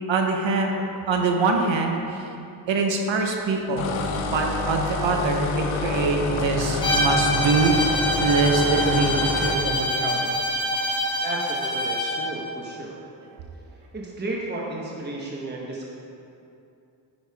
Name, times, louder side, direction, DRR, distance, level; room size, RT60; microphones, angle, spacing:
voice 1, 0.1-2.3 2.7-10.3, right 3 dB, 70° right, 3 dB, 1.0 m, -24 dB
sound 1, 3.8-9.6, left 4 dB, 85° left, 0.8 m, -28 dB
Bowed string instrument, 6.8-12.3, equal, 10° left, 1.7 m, -25 dB
voice 2, 11.2-13.0 13.9-15.9, right 2 dB, 20° right, -2 dB, 1.0 m, -33 dB
9.6 x 6.5 x 3.5 m, 2.7 s
cardioid pair, 95°, 48 cm